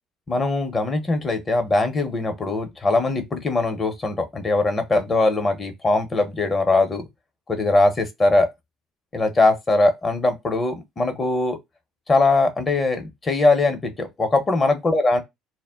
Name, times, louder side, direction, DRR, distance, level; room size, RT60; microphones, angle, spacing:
voice 1, 0.3-7.0 7.5-8.5 9.1-11.6 12.1-15.2, left 2 dB, 30° left, 0.8 m, -21 dB
2.1 x 2.1 x 3.5 m
supercardioid pair, 75°, 0 cm